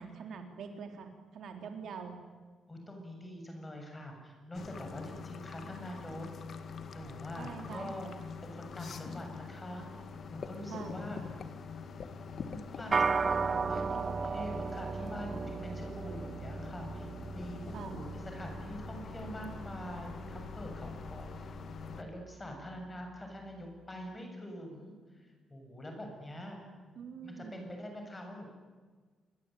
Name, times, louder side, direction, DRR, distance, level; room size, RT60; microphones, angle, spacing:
voice 1, 0.0-2.2 7.4-8.0 10.7-11.0 17.7-18.0 27.0-27.7, right 6 dB, 65° right, 5 dB, 3.5 m, -44 dB
voice 2, 2.7-6.3 6.9-8.1 8.5-9.9 10.3-11.2 12.5-21.5 22.0-26.6 27.2-28.5, left 1 dB, 15° left, 3 dB, 7.5 m, -45 dB
sound 1, 4.5-22.0, left 5 dB, 50° left, 2.1 m, -45 dB
sound 2, 12.9-22.4, right 5 dB, 35° right, 0.9 m, -36 dB
27.5 x 22.5 x 9.3 m, 1.5 s
cardioid pair, 135°, 0 cm